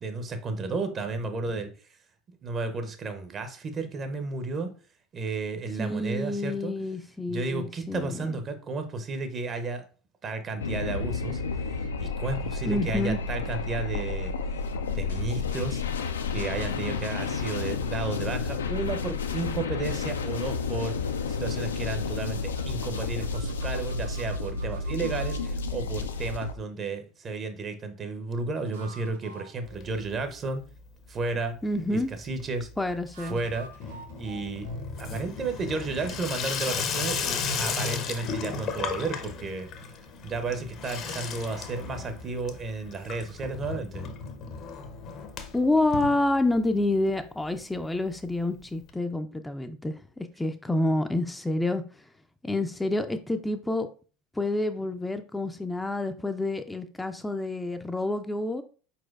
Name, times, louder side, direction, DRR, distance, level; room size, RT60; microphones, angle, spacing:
voice 1, 0.0-1.7 2.4-4.7 5.1-6.7 7.3-9.8 10.2-14.3 14.9-15.8 16.3-21.0 21.3-30.6 31.1-31.6 31.9-32.7 33.3-33.7 34.2-34.7 35.0-39.7 40.2-44.1, right 3 dB, 35° right, 8 dB, 0.7 m, -33 dB
voice 2, 5.8-8.4 12.7-13.2 31.6-32.1 32.8-33.4 45.5-51.8 52.4-53.9 54.4-58.6, left 2 dB, 10° left, 8 dB, 0.4 m, -28 dB
sound 1, 10.6-26.5, left 4 dB, 85° left, 0.3 m, -31 dB
sound 2, 22.5-25.5 28.5-30.6 33.1-35.9, right 4 dB, 85° right, 0.7 m, -50 dB
Water tap faucet / Sink (filling or washing), 29.6-30.4 30.7-31.3 31.5-46.8 47.2-47.3 47.4-47.5 47.8-47.9 48.9-49.0, left 5 dB, 50° left, 0.6 m, -35 dB
4.4 x 4.2 x 2.3 m, 0.38 s
hypercardioid pair, 80°, 0 cm